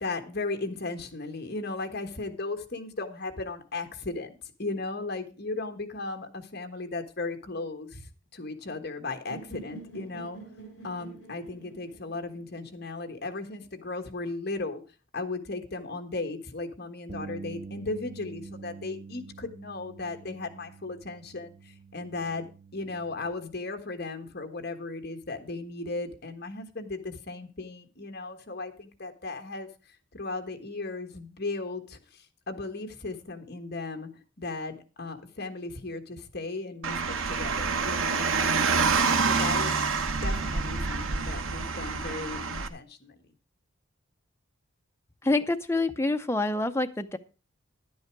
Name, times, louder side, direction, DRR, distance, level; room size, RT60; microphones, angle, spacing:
voice 1, 0.0-10.4 10.8-14.8 15.1-21.5 21.9-22.4 22.7-29.7 30.1-32.0 32.5-34.1 34.4-38.9 39.2-39.8 40.2-43.1, left 3 dB, 50° left, 5 dB, 1.5 m, -36 dB
sound 1, 9.3-13.2, right 3 dB, 65° left, 5.4 m, -47 dB
Bass guitar, 17.1-23.3, right 4 dB, 35° right, 0.6 m, -46 dB
Car, 36.8-42.7, right 4 dB, 70° right, 1.0 m, -27 dB
voice 2, 45.2-47.2, left 2 dB, 10° left, 7 dB, 0.6 m, -26 dB
10.5 x 9.5 x 4.6 m, 0.33 s
head